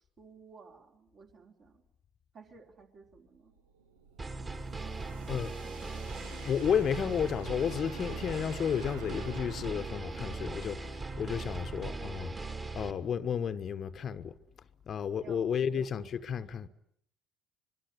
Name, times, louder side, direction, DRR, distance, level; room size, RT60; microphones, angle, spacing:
voice 1, 0.2-1.8 2.3-3.5 4.8-6.0 15.2-16.1, right 5 dB, 45° right, 4.5 m, -55 dB
sound 1, 3.3-12.3, right 6 dB, 75° right, 1.3 m, -51 dB
sound 2, 4.2-12.9, right 3 dB, 30° right, 2.9 m, -39 dB
voice 2, 6.4-12.3 12.7-14.3 14.9-16.7, left 7 dB, 45° left, 1.1 m, -32 dB
25.0 x 22.5 x 9.9 m
figure-of-eight pair, 55°, 0 cm